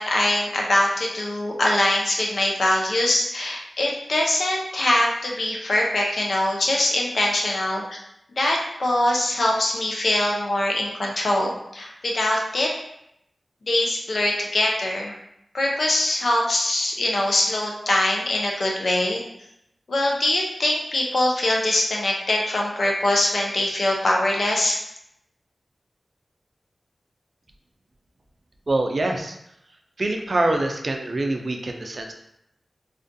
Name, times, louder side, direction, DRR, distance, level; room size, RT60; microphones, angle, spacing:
voice 1, 0.0-7.8 8.4-12.7 13.7-15.1 15.5-19.2 19.9-24.8, left 1 dB, 70° left, -1 dB, 0.5 m, -23 dB
voice 2, 28.7-29.4 30.0-32.1, right 2 dB, 55° right, 3 dB, 0.4 m, -24 dB
2.4 x 2.2 x 2.5 m, 0.79 s
cardioid pair, 50°, 0 cm